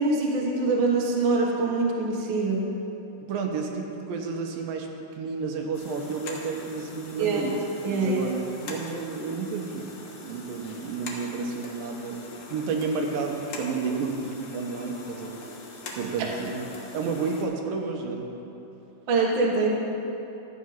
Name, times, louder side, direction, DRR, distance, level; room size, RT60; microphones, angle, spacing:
voice 1, 0.0-2.6 7.2-7.4 7.8-8.2 16.2-16.3 19.1-19.7, right 3 dB, 50° right, -2 dB, 1.5 m, -24 dB
voice 2, 3.3-4.9 5.2-7.5 7.9-9.9 10.2-12.2 12.5-15.4 15.9-18.3, right 4 dB, 80° right, 2 dB, 2.6 m, -31 dB
sound 1, 5.7-17.4, left 3 dB, 60° left, 2.2 m, -42 dB
12.5 x 8.9 x 5.7 m, 3.0 s
omnidirectional pair, 4.1 m